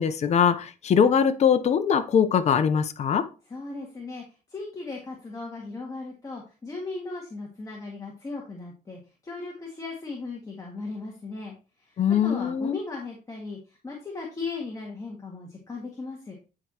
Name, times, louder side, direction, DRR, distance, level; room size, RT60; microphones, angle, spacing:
voice 1, 0.0-3.2 12.0-12.8, left 7 dB, 40° left, 0.8 m, -22 dB
voice 2, 3.5-4.2 4.5-16.3, left 3 dB, 20° left, 1.9 m, -37 dB
9.8 x 4.7 x 2.9 m
cardioid pair, 110°, 17 cm